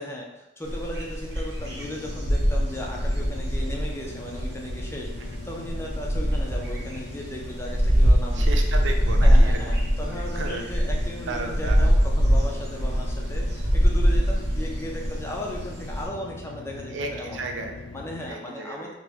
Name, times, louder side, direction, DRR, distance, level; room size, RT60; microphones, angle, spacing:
voice 1, 0.0-8.4 9.2-17.4 17.9-18.9, left 1 dB, 15° left, -1 dB, 0.5 m, -36 dB
sound 1, 0.7-16.1, equal, 65° right, 0.9 m, -23 dB
sound 2, 1.6-18.3, left 3 dB, 80° left, 0.4 m, -41 dB
voice 2, 8.3-9.8 10.0-10.8 11.2-11.9 16.9-17.8 18.3-18.9, right 3 dB, 90° right, 3 dB, 0.6 m, -34 dB
3.0 x 2.9 x 3.4 m, 0.98 s
head